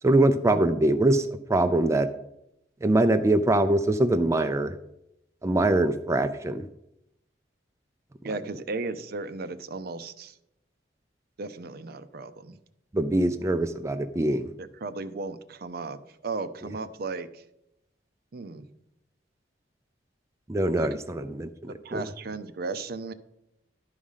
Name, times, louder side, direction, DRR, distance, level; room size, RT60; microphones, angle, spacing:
voice 1, 0.0-2.1 2.8-4.7 5.4-6.7 12.9-14.5 20.5-22.0, right 1 dB, 15° right, 8 dB, 0.4 m, -23 dB
voice 2, 8.2-10.4 11.4-12.6 14.6-17.4 18.3-18.7 20.8-21.0 21.7-23.1, right 3 dB, 60° right, 11 dB, 0.6 m, -35 dB
11.5 x 5.0 x 5.5 m, 0.84 s
head